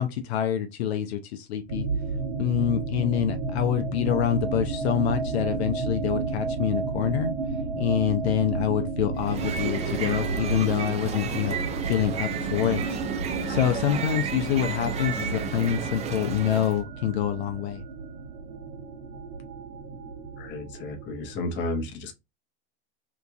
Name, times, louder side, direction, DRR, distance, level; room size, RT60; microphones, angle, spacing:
voice 1, 0.0-1.9 2.4-7.3 7.7-11.6 11.9-12.8 13.5-17.8, left 10 dB, 75° left, 0.7 m, -26 dB
sound 1, 1.7-21.5, right 4 dB, 65° right, 1.2 m, -32 dB
sound 2, 9.2-16.8, right 6 dB, 20° right, 0.4 m, -32 dB
voice 2, 20.4-22.1, left 2 dB, 35° left, 0.9 m, -32 dB
3.0 x 2.5 x 3.4 m
hypercardioid pair, 120°, 32 cm